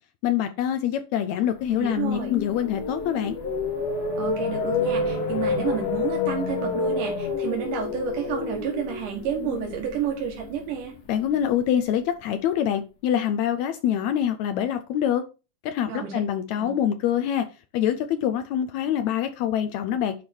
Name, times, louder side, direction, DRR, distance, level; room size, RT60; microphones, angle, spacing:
voice 1, 0.2-3.4 11.1-15.2 15.6-17.5 17.7-20.1, left 10 dB, 80° left, 9 dB, 1.7 m, -25 dB
sound 1, 1.7-11.8, left 4 dB, 55° left, 1.0 m, -29 dB
voice 2, 1.7-2.4 4.2-10.9 15.9-16.2 16.6-16.7, right 8 dB, 80° right, 0 dB, 3.1 m, -30 dB
10.0 x 3.4 x 4.4 m, 0.31 s
omnidirectional pair, 3.6 m